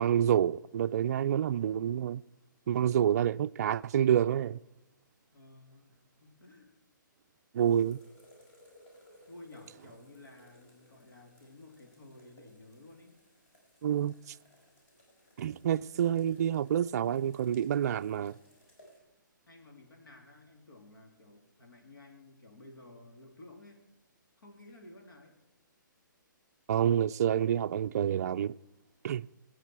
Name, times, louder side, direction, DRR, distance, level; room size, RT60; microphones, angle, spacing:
voice 1, 0.0-2.2 2.7-4.6 7.5-8.0 13.8-14.3 15.4-18.4 26.7-28.5 29.0-29.3, right 9 dB, 50° right, 0.3 m, -28 dB
voice 2, 5.3-6.7 9.3-13.2 15.7-16.3 19.5-23.8 24.4-25.4, left 2 dB, 80° left, 3.3 m, -54 dB
sound 1, 7.6-19.0, equal, 40° left, 5.0 m, -61 dB
20.0 x 9.0 x 4.6 m
hypercardioid pair, 155°, 11 cm